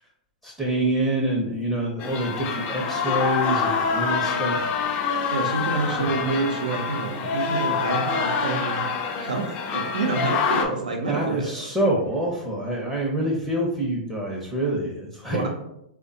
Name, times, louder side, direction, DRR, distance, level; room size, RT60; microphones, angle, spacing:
voice 1, 0.4-4.7 6.0-6.1 11.1-15.5, right 1 dB, 10° right, -4 dB, 0.6 m, -26 dB
sound 1, 2.0-10.7, left 5 dB, 40° left, 0.4 m, -26 dB
voice 2, 5.3-8.9 9.2-11.6 15.3-15.5, right 3 dB, 85° right, 2 dB, 0.6 m, -28 dB
3.3 x 2.1 x 2.7 m, 0.81 s
hypercardioid pair, 110°, 4 cm